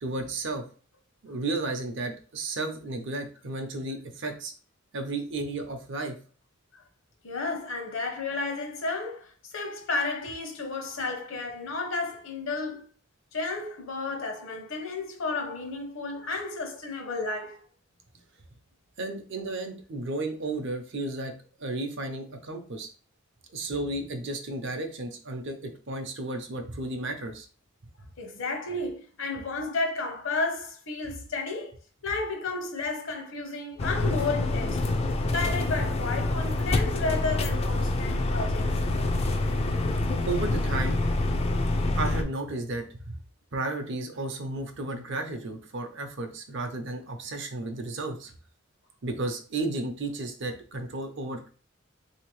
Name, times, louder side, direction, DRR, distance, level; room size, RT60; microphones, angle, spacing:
voice 1, 0.0-0.6 1.2-4.5 4.9-6.1 19.0-21.3 21.6-22.9 23.5-27.5 40.2-41.0 41.9-43.2 43.5-48.3 49.0-51.6, right 2 dB, 60° right, 0.6 m, -33 dB
voice 2, 7.2-12.9 13.3-17.6 23.7-23.8 28.2-31.7 32.0-35.0 35.3-38.8, left 3 dB, 70° left, 0.9 m, -32 dB
sound 1, 33.8-42.2, left 2 dB, 30° left, 0.3 m, -26 dB
3.4 x 2.8 x 3.1 m
head